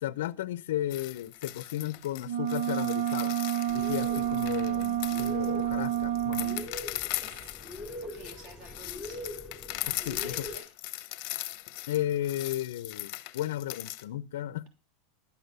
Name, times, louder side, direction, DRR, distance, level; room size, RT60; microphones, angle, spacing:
voice 1, 0.0-3.3 3.7-6.7 10.1-10.5 11.9-14.7, left 13 dB, 75° left, 0.6 m, -34 dB
sound 1, 0.9-14.0, left 18 dB, 40° left, 0.8 m, -39 dB
sound 2, 2.2-6.7, right 11 dB, 85° right, 0.5 m, -29 dB
sound 3, 3.7-10.6, left 1 dB, ahead, 2.9 m, -43 dB
voice 2, 4.0-4.4 7.2-9.3 9.7-10.7, right 2 dB, 35° right, 3.1 m, -52 dB
12.0 x 8.2 x 6.7 m
supercardioid pair, 175°, 0 cm